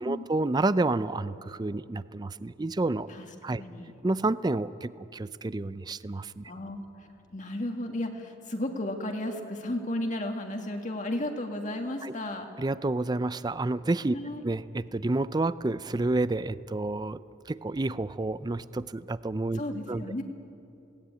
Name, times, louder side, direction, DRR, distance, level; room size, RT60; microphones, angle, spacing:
voice 1, 0.0-3.1 3.4-3.6 4.0-6.5 12.0-12.1 12.6-14.2 14.4-17.2 17.5-19.6 19.9-20.0, right 2 dB, 20° right, 16 dB, 0.4 m, -29 dB
voice 2, 3.6-3.9 6.4-6.8 7.3-12.5 14.1-14.4 19.5-20.2, left 1 dB, 40° left, 3 dB, 1.8 m, -33 dB
21.0 x 17.5 x 9.3 m, 2.8 s
head